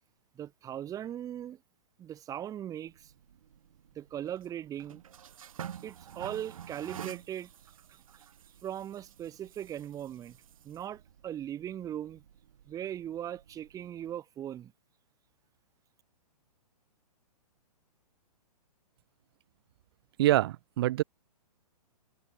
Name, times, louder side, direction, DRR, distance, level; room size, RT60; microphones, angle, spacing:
voice 1, 0.3-1.6 2.0-3.1 3.9-5.0 5.8-7.5 7.9-8.0 8.6-10.4 10.6-12.2 12.7-14.7, right 10 dB, 15° right, 1.4 m, -39 dB
sound 1, 2.9-14.1, right 9 dB, 60° right, 1.1 m, -50 dB
voice 2, 20.2-21.0, right 15 dB, 40° right, 0.5 m, -25 dB
figure-of-eight pair, 120°, 20 cm